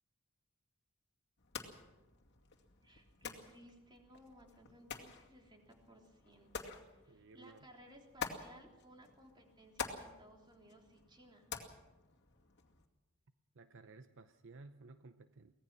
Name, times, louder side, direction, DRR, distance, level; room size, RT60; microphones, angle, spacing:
sound 1, 1.4-12.9, left 6 dB, 55° left, 2.4 m, -49 dB
voice 1, 2.8-6.5 6.9-11.5, equal, 20° right, 2 dB, 3.4 m, -60 dB
voice 2, 7.1-7.7 13.5-15.5, right 3 dB, 60° right, 10 dB, 0.8 m, -56 dB
24.0 x 18.0 x 6.1 m, 1.1 s
head